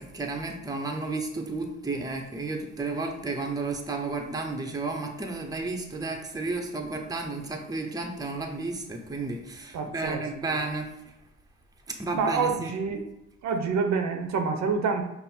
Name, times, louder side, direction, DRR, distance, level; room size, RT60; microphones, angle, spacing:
voice 1, 0.0-10.9 11.9-12.9, right 3 dB, 10° right, 2 dB, 0.7 m, -32 dB
voice 2, 9.7-10.6 12.1-13.0 13.4-15.0, right 5 dB, 65° right, 5 dB, 0.7 m, -27 dB
5.4 x 2.0 x 4.3 m, 0.91 s
cardioid pair, 90°, 30 cm